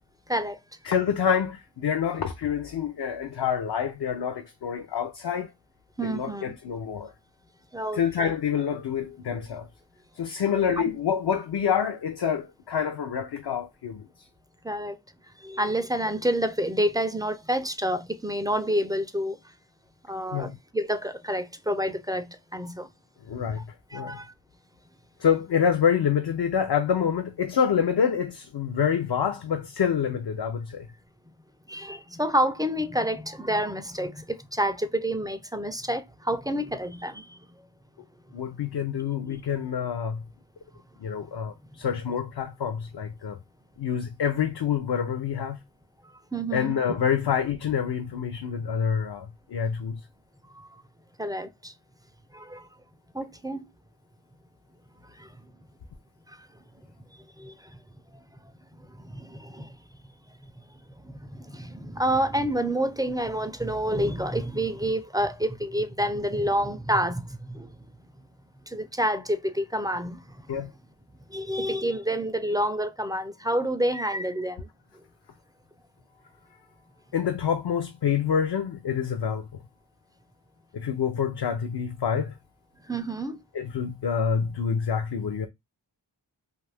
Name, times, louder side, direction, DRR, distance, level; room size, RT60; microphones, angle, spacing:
voice 1, 0.8-5.5 6.0-7.1 7.9-9.7 10.2-14.0 20.3-20.6 23.3-23.6 23.9-24.2 25.2-30.9 38.3-40.2 41.0-43.4 43.8-45.6 46.5-50.0 70.5-70.7 77.1-79.5 80.7-82.3 83.5-85.5, left 7 dB, 65° left, 0.5 m, -27 dB
voice 2, 6.0-6.5 7.7-8.3 10.9-11.0 14.6-15.0 15.4-19.4 20.1-22.9 23.9-24.3 31.7-37.4 39.3-39.4 46.0-47.0 50.5-50.8 51.2-51.7 52.3-52.7 53.1-53.6 55.2-55.3 56.3-56.5 57.4-57.8 58.8-59.8 60.4-60.5 61.0-67.8 68.7-70.6 71.3-74.7 82.8-83.4, right 1 dB, 10° right, 0.3 m, -29 dB
2.6 x 2.4 x 3.3 m
wide cardioid pair, 45°, 44 cm